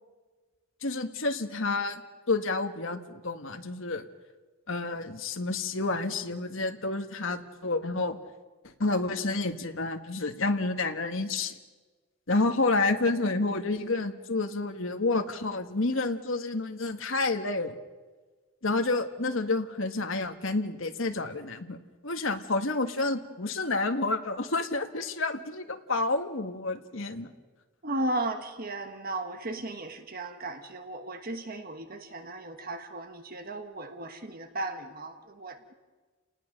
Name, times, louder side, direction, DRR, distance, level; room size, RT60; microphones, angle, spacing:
voice 1, 0.8-2.0 2.3-4.0 4.7-8.2 8.8-11.5 12.3-17.7 18.6-21.8 22.0-27.3, left 3 dB, 60° left, 6 dB, 1.6 m, -29 dB
voice 2, 27.8-35.7, right 2 dB, 40° right, 7 dB, 1.3 m, -35 dB
29.5 x 19.0 x 6.6 m, 1.3 s
head